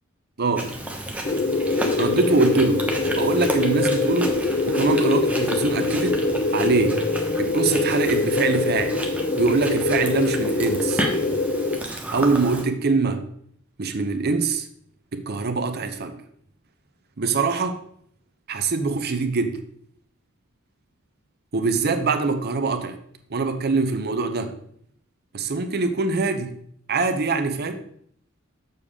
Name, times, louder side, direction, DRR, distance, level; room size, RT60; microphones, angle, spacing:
voice 1, 0.4-0.7 2.0-2.9 3.2-4.4 4.7-7.0 7.4-9.0 9.4-11.0 12.1-13.3 13.8-14.7 15.1-16.2 17.2-17.8 18.5-19.6 21.5-23.0 23.3-24.6 25.3-26.5 26.9-27.8, right 3 dB, 50° right, 0.7 m, -23 dB
Chewing mastication, 0.5-12.6, right 1 dB, 5° right, 0.9 m, -32 dB
sound 1, 1.2-11.8, left 3 dB, 35° left, 0.5 m, -24 dB
6.7 x 6.7 x 3.6 m
head